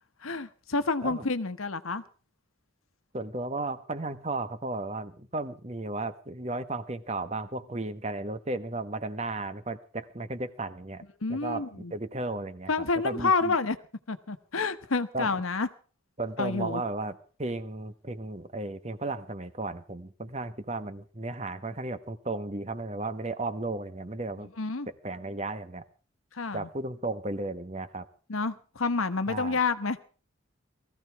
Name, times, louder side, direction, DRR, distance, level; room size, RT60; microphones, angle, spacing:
voice 1, 0.2-2.0 11.2-11.9 12.7-13.8 14.1-15.7 16.4-16.8 24.6-24.9 26.3-26.7 28.3-30.0, left 4 dB, 85° left, 1.1 m, -29 dB
voice 2, 3.1-11.0 11.3-12.7 13.0-13.6 15.1-15.3 16.2-24.5 25.0-25.8 26.5-28.1 29.3-29.6, right 2 dB, 30° right, 1.2 m, -34 dB
19.5 x 14.5 x 4.7 m
head